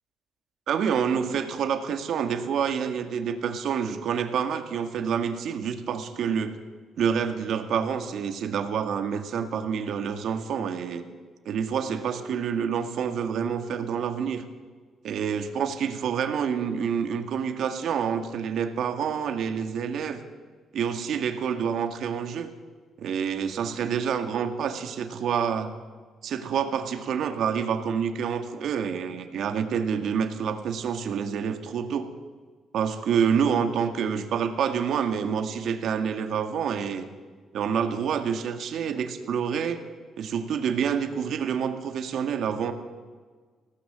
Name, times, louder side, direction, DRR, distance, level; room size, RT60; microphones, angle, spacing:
voice 1, 0.7-6.5 7.0-11.0 11.5-14.4 15.0-20.2 20.7-22.5 23.0-25.7 26.2-32.1 32.7-37.1 37.5-39.8 40.2-42.7, right 7 dB, 70° right, 7 dB, 2.0 m, -27 dB
20.5 x 17.5 x 7.6 m, 1.5 s
cardioid pair, 90°, 0 cm